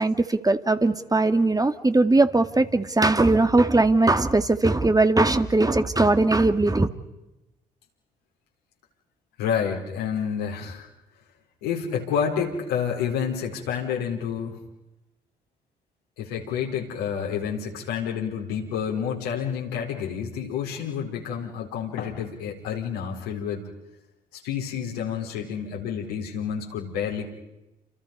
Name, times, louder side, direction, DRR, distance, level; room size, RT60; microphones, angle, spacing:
voice 1, 0.0-6.9, right 2 dB, 20° right, 9 dB, 2.0 m, -20 dB
voice 2, 9.4-10.9 11.6-14.6 16.2-23.6 24.3-27.3, left 7 dB, 85° left, -1 dB, 4.6 m, -29 dB
29.0 x 27.5 x 5.4 m, 0.96 s
hypercardioid pair, 50°, 20 cm